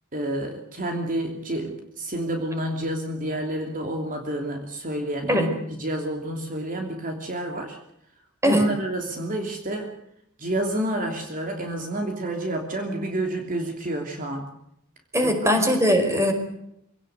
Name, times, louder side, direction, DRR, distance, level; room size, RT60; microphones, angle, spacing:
voice 1, 0.1-7.8 8.4-9.9 10.4-14.5 15.2-15.5, right 1 dB, 40° right, 3 dB, 3.0 m, -29 dB
voice 2, 15.1-16.3, equal, 15° right, 6 dB, 5.1 m, -20 dB
26.5 x 18.0 x 8.1 m, 0.80 s
head